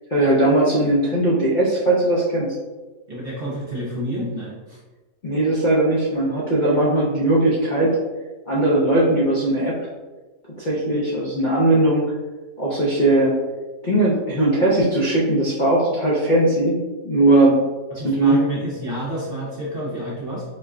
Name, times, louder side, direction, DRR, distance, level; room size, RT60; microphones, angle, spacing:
voice 1, 0.1-2.5 5.2-8.0 8.5-9.7 10.6-12.0 12.6-13.3 13.8-17.6 18.0-18.4, right 1 dB, 50° left, -7 dB, 0.6 m, -19 dB
voice 2, 3.1-4.8 17.9-20.4, equal, 50° right, -5 dB, 0.7 m, -29 dB
4.2 x 2.2 x 3.6 m, 1.2 s
omnidirectional pair, 1.7 m